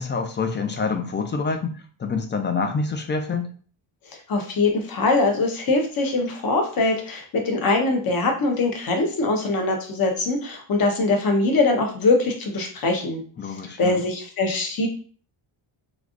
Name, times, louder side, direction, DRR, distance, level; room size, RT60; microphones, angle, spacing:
voice 1, 0.0-3.5 13.4-14.0, left 4 dB, 25° left, 5 dB, 0.3 m, -27 dB
voice 2, 4.3-13.2 13.8-14.9, left 3 dB, 45° left, 2 dB, 0.9 m, -22 dB
3.3 x 2.5 x 2.4 m, 0.42 s
cardioid pair, 95°, 49 cm